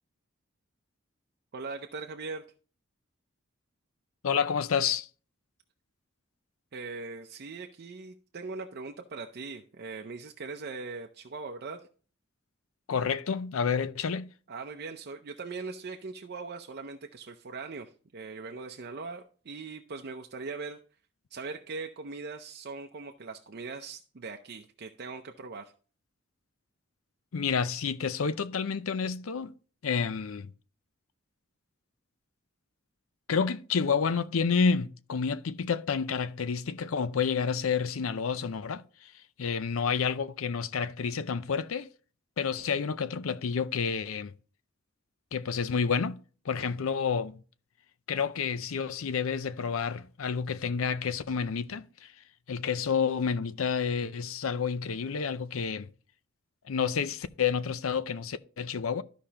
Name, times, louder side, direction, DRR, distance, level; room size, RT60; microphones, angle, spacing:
voice 1, 1.5-2.4 6.7-11.9 14.5-20.8 21.3-25.7, right 4 dB, 50° right, 0.5 m, -40 dB
voice 2, 4.2-5.1 12.9-14.3 27.3-29.5 29.8-30.5 33.3-39.1 39.4-41.9 42.4-44.3 45.3-46.2 46.4-47.4 48.1-52.1 52.5-55.9 56.7-59.0, left 6 dB, 85° left, 0.5 m, -29 dB
13.0 x 5.1 x 2.9 m
head